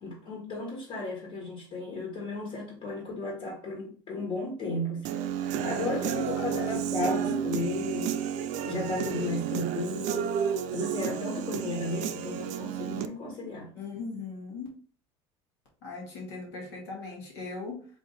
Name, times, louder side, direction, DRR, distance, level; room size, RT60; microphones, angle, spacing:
voice 1, 0.0-5.1 5.6-8.2 8.6-10.3 10.7-13.7, left 2 dB, 45° left, 1.7 m, -34 dB
Human voice / Guitar, 5.0-13.1, right 9 dB, 60° right, 0.4 m, -31 dB
voice 2, 5.7-6.6 7.1-7.7 13.7-14.7 15.8-17.9, left 4 dB, 85° left, 2.0 m, -39 dB
3.5 x 2.6 x 4.1 m
supercardioid pair, 95°, 14 cm